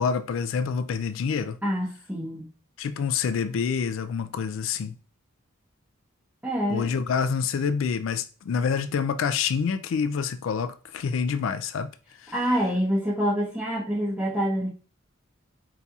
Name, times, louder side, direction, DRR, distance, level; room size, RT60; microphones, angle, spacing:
voice 1, 0.0-1.6 2.8-5.0 6.7-11.9 12.2-12.3, left 6 dB, 70° left, 0.3 m, -27 dB
voice 2, 1.6-2.5 6.4-6.9 12.3-14.7, equal, 5° right, 0.6 m, -26 dB
5.2 x 2.8 x 2.3 m
head